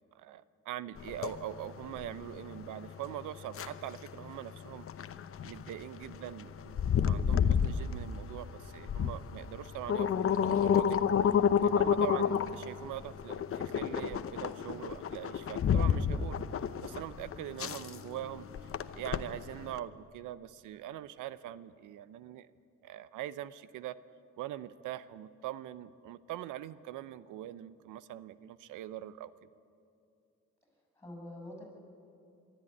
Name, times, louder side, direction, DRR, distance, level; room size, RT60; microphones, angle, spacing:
voice 1, 0.1-4.9 5.4-11.0 11.2-16.4 16.8-18.5 19.0-22.5 22.8-23.9 24.4-29.5, right 12 dB, 85° right, 16 dB, 0.7 m, -42 dB
sound 1, 1.0-19.8, left 7 dB, 45° left, 0.9 m, -31 dB
voice 2, 30.9-31.6, left 1 dB, 10° left, 2 dB, 6.9 m, -47 dB
23.5 x 12.5 x 9.9 m, 2.6 s
cardioid pair, 90°, 30 cm